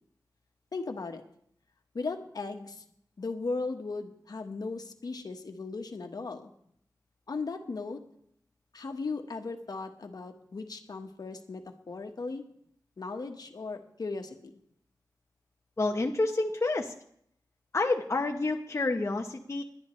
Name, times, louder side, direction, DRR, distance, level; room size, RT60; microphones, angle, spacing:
voice 1, 0.7-1.2 1.9-2.8 3.2-6.5 7.3-8.0 8.7-12.4 13.0-14.6, left 3 dB, 65° left, 6 dB, 1.3 m, -37 dB
voice 2, 15.8-16.9 17.7-19.6, left 2 dB, 40° left, 3 dB, 0.9 m, -29 dB
20.0 x 11.0 x 3.2 m, 0.68 s
wide cardioid pair, 80°, 7 cm